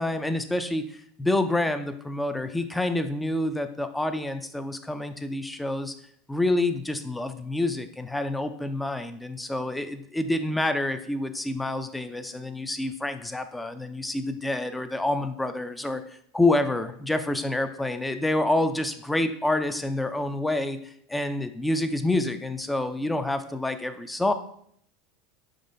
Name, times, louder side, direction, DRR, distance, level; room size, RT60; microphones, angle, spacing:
voice 1, 0.0-5.9 6.3-24.3, left 2 dB, 10° left, 8 dB, 0.3 m, -28 dB
4.8 x 3.7 x 2.6 m, 0.66 s
hypercardioid pair, 85°, 0 cm